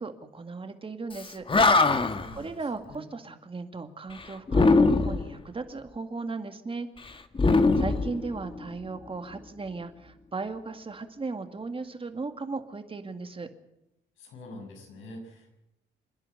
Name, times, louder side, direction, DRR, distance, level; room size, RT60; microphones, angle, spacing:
voice 1, 0.0-1.4 2.3-6.9 7.5-13.5, right 3 dB, 25° right, 7 dB, 2.2 m, -37 dB
Animal, 1.2-1.3 1.5-2.3 4.5-5.3 7.3-8.7, left 3 dB, 25° left, 1.5 m, -21 dB
voice 2, 2.1-2.5 2.9-3.1 7.5-8.0 14.2-15.6, left 1 dB, 90° left, 3 dB, 6.6 m, -45 dB
26.5 x 10.5 x 9.8 m, 0.87 s
cardioid pair, 90°, 20 cm